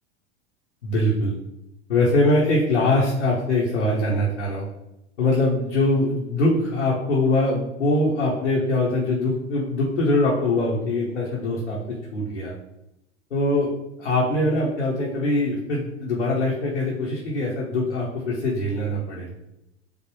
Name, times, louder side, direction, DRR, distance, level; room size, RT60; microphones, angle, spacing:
voice 1, 0.8-1.3 1.9-4.7 5.2-12.5 13.3-13.7 14.0-19.3, left 2 dB, 75° left, -4 dB, 0.7 m, -22 dB
3.4 x 2.1 x 3.0 m, 0.88 s
figure-of-eight pair, 85°, 35 cm